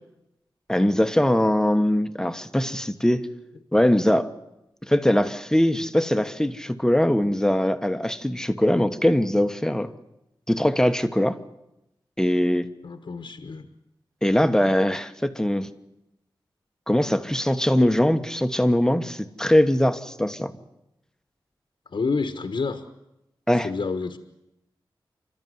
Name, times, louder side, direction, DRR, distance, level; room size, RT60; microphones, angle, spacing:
voice 1, 0.7-3.3 3.7-4.3 4.8-9.9 10.5-11.4 12.2-12.7 14.2-15.7 16.9-20.5 23.5-23.7, left 1 dB, 5° left, 9 dB, 1.3 m, -21 dB
voice 2, 12.8-13.7 21.9-22.8 23.6-24.2, left 4 dB, 65° left, 8 dB, 1.4 m, -28 dB
29.0 x 13.0 x 9.5 m, 0.90 s
wide cardioid pair, 70°, 9 cm